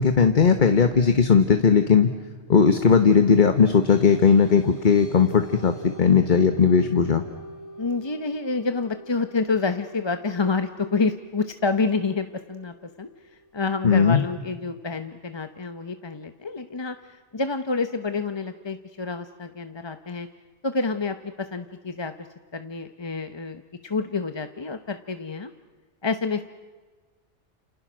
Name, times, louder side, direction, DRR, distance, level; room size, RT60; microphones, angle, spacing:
voice 1, 0.0-2.1 2.5-7.2 13.8-14.2, left 6 dB, 40° left, 8 dB, 1.2 m, -18 dB
sound 1, 3.2-14.1, right 1 dB, 65° left, 3.0 m, -44 dB
voice 2, 7.8-13.1 13.5-20.3 20.6-22.3 22.5-25.5 26.0-26.4, left 4 dB, 25° left, 8 dB, 0.7 m, -28 dB
30.0 x 29.0 x 6.2 m, 1.4 s
omnidirectional pair, 1.3 m